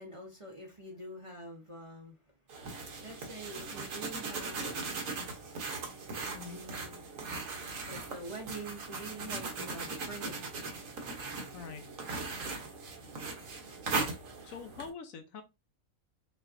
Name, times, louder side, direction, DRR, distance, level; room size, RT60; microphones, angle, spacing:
voice 1, 0.0-2.2 2.5-5.5 6.4-7.0 7.9-10.4, right 2 dB, 30° right, 0.7 m, -46 dB
sound 1, 2.5-14.9, right 3 dB, 65° right, 1.3 m, -39 dB
voice 2, 11.5-11.9 14.4-15.4, left 6 dB, 70° left, 1.0 m, -44 dB
5.9 x 2.5 x 2.5 m
omnidirectional pair, 1.5 m